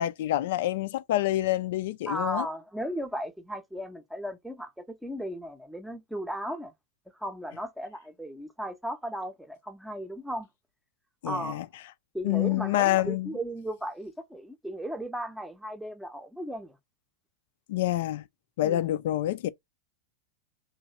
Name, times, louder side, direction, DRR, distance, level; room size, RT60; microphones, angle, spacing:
voice 1, 0.0-2.5 11.2-11.7 12.2-13.4 17.7-18.2 18.6-19.5, left 14 dB, 55° left, 0.4 m, -27 dB
voice 2, 2.1-6.7 7.2-10.5 11.2-11.6 12.1-16.8 18.6-18.9, right 1 dB, ahead, 0.7 m, -36 dB
3.0 x 2.7 x 4.1 m
figure-of-eight pair, 90°, 0 cm